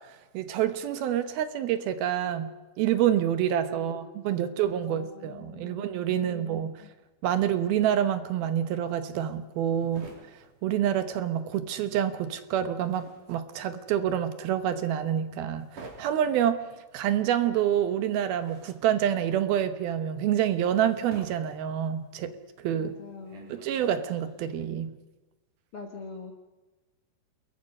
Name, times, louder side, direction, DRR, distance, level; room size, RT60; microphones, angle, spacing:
voice 1, 0.3-6.7 7.2-10.1 10.6-16.6 16.9-22.9 23.5-25.0, right 10 dB, 70° right, 10 dB, 2.8 m, -27 dB
voice 2, 3.7-6.9 22.8-23.5 25.7-26.3, left 4 dB, 50° left, 3 dB, 1.7 m, -45 dB
sound 1, 9.1-11.6 11.9-24.5, right 3 dB, 50° right, 5.1 m, -51 dB
28.5 x 21.5 x 5.5 m, 1.2 s
omnidirectional pair, 4.7 m